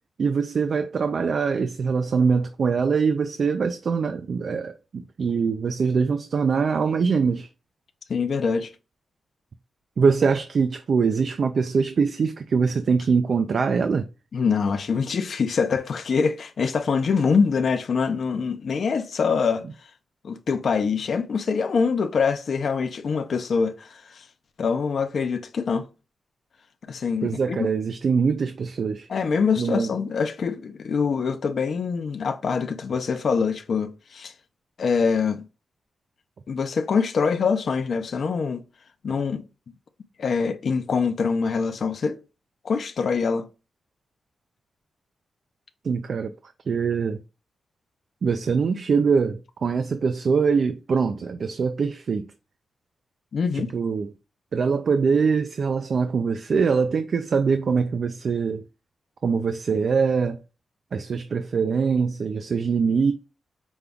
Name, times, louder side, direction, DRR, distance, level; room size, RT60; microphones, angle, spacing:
voice 1, 0.2-7.5 10.0-14.1 27.2-29.1 29.6-29.9 45.8-46.3 46.7-47.2 48.2-52.3 53.5-54.1 54.5-58.6 59.2-60.4 60.9-63.1, right 5 dB, 50° right, 0.4 m, -23 dB
voice 2, 8.1-8.7 14.3-19.6 20.2-24.2 24.6-25.9 26.9-27.7 29.1-34.3 34.8-35.4 36.5-38.6 39.0-39.4 40.2-42.2 42.6-43.5 53.3-53.7, left 5 dB, 55° left, 0.5 m, -24 dB
5.2 x 2.3 x 3.5 m
wide cardioid pair, 160°, 0 cm